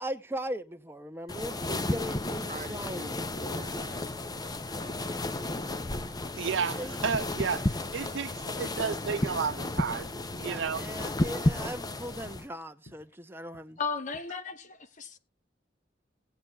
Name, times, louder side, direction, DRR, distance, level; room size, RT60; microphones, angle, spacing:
voice 1, 0.0-3.1 4.9-5.2 6.5-6.9 10.4-13.8, equal, 15° right, 0.7 m, -39 dB
sound 1, 1.3-12.5, left 2 dB, 20° left, 0.6 m, -33 dB
voice 2, 2.5-5.1 5.4-5.6, right 4 dB, 45° right, 1.0 m, -48 dB
sound 2, 6.0-6.2 6.6-6.9 7.3-7.5 7.9-8.1 8.5-8.7 9.1-9.4 9.7-10.0 10.3-10.6 11.0-11.2 11.6-11.8 12.3-12.5 12.9-13.1 13.5-13.8 14.1-14.2, left 2 dB, 70° left, 1.2 m, -54 dB
voice 3, 6.4-10.8, right 6 dB, 85° right, 0.5 m, -32 dB
voice 4, 13.8-15.2, left 5 dB, 45° left, 0.9 m, -35 dB
19.5 x 7.9 x 2.3 m
head